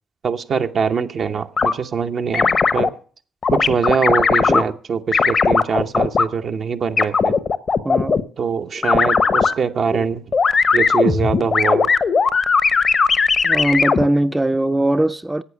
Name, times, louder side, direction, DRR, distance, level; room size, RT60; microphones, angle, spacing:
voice 1, 0.2-2.9 3.5-7.4 8.4-10.2 10.7-11.9, right 6 dB, 60° right, 0.9 m, -23 dB
sound 1, 1.6-1.7 2.3-2.9 3.4-4.6 5.1-6.2 7.0-8.2 8.8-9.5 10.3-14.0, left 5 dB, 50° left, 1.0 m, -17 dB
voice 2, 7.8-8.3 8.7-8.8 9.9-10.1 13.4-15.4, right 1 dB, 15° right, 0.6 m, -20 dB
11.5 x 8.4 x 7.0 m
hypercardioid pair, 40°, 0 cm